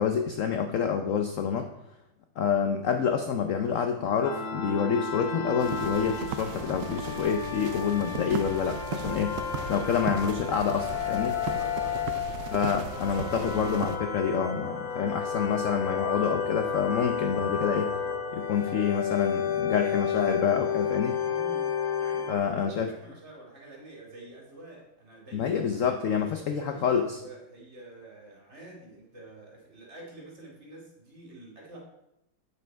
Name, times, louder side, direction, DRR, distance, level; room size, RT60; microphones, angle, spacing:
voice 1, 0.0-1.7 2.4-9.4 9.7-11.4 12.5-17.9 18.3-21.2 22.3-22.9 25.3-27.2, left 7 dB, 70° left, 6 dB, 0.7 m, -27 dB
Gentle pad, 4.2-22.3, left 7 dB, 90° left, 1.7 m, -32 dB
sound 1, 5.6-14.0, right 7 dB, 75° right, 1.3 m, -38 dB
voice 2, 11.3-12.6 21.2-25.7 26.0-31.8, right 2 dB, 35° right, -2 dB, 2.7 m, -47 dB
8.5 x 6.9 x 4.5 m, 0.85 s
omnidirectional pair, 2.0 m